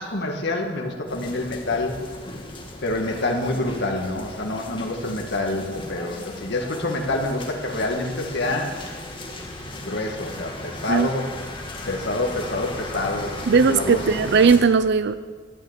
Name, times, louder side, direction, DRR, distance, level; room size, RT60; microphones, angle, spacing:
voice 1, 0.0-2.0 2.8-8.7 9.8-11.2 11.9-14.0, left 2 dB, 60° left, 1 dB, 1.8 m, -27 dB
sound 1, 1.1-14.6, left 1 dB, 25° left, 2.0 m, -37 dB
voice 2, 13.5-15.1, right 5 dB, 60° right, 13 dB, 0.4 m, -18 dB
13.0 x 9.5 x 8.1 m, 1.5 s
head